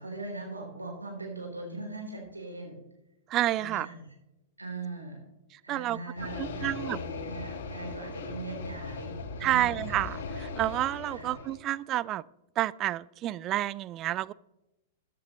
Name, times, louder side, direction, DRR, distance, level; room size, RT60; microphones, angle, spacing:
voice 1, 0.0-2.8 3.5-4.0 4.6-5.2 5.6-9.9 11.1-11.3, right 2 dB, 90° right, -1 dB, 4.2 m, -40 dB
voice 2, 3.3-3.9 5.5-6.0 6.4-7.0 9.4-12.2 12.6-14.3, right 14 dB, 35° right, 21 dB, 0.3 m, -29 dB
sound 1, 6.2-11.6, left 4 dB, 60° left, 1.4 m, -39 dB
14.5 x 11.0 x 3.2 m, 0.93 s
figure-of-eight pair, 100°, 0 cm